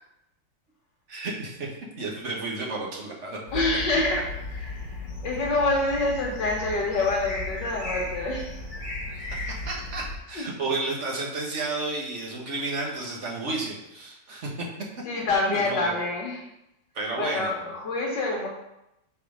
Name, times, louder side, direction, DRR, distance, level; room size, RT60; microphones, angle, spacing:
voice 1, 1.1-1.7 2.0-3.6 9.1-14.5 15.5-15.9 16.9-17.5, right 3 dB, 45° right, -2 dB, 1.4 m, -32 dB
voice 2, 3.5-8.5 10.4-10.5 15.0-16.5 17.2-18.5, left 2 dB, 70° left, -1 dB, 1.6 m, -27 dB
sound 1, 3.5-10.2, left 2 dB, 45° left, 1.6 m, -35 dB
5.8 x 4.3 x 5.1 m, 0.85 s
omnidirectional pair, 2.0 m